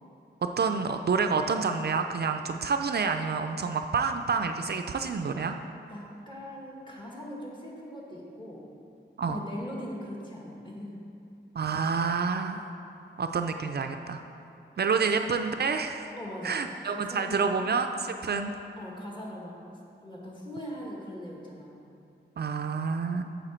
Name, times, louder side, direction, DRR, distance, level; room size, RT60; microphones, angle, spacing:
voice 1, 0.6-5.6 9.2-9.4 11.6-12.6 13.2-14.2 14.8-16.1 16.4-18.5 22.4-23.2, right 5 dB, 55° right, 6 dB, 0.4 m, -28 dB
voice 2, 5.9-8.6 9.2-11.0 14.9-15.2 16.2-16.6 16.9-17.4 18.8-19.5 20.0-21.8, equal, 25° left, -3 dB, 1.8 m, -40 dB
8.9 x 6.8 x 4.4 m, 2.7 s
wide cardioid pair, 110°, 19 cm